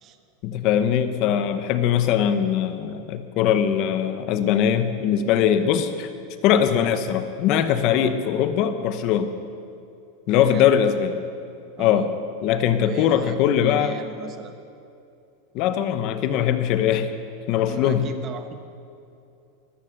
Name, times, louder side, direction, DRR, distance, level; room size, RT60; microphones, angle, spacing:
voice 1, 0.4-6.1 6.4-9.3 10.3-11.1 11.8-12.1 12.4-13.9 15.5-17.1 17.5-18.1, left 9 dB, 35° left, 9 dB, 0.9 m, -21 dB
voice 2, 10.4-10.7 11.8-12.1 12.8-14.6 17.5-18.6, right 6 dB, 25° right, 8 dB, 1.0 m, -37 dB
14.0 x 14.0 x 6.7 m, 2.6 s
supercardioid pair, 170°, 0 cm